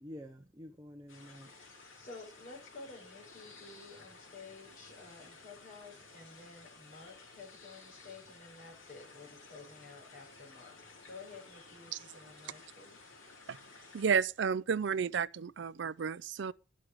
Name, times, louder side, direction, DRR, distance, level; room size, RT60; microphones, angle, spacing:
voice 1, 0.0-1.9, equal, 20° right, 0.9 m, -49 dB
sound 1, 1.1-14.1, left 3 dB, 85° left, 3.7 m, -55 dB
voice 2, 1.9-10.8 11.1-13.0, left 3 dB, 40° left, 5.3 m, -52 dB
voice 3, 13.9-16.5, right 6 dB, 60° right, 0.4 m, -32 dB
11.0 x 6.3 x 6.2 m
head